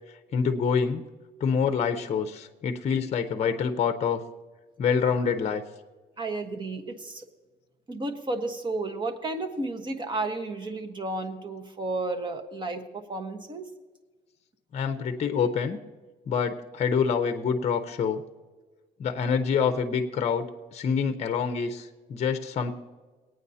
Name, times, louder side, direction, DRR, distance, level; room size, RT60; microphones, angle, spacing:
voice 1, 0.3-1.0 1.4-4.2 4.8-5.6 14.7-15.8 16.3-18.2 19.0-22.7, left 6 dB, 40° left, 8 dB, 0.8 m, -26 dB
voice 2, 6.2-7.3 7.9-13.7, right 2 dB, 25° right, 6 dB, 1.2 m, -32 dB
20.5 x 9.1 x 2.8 m, 1.3 s
cardioid pair, 110°, 17 cm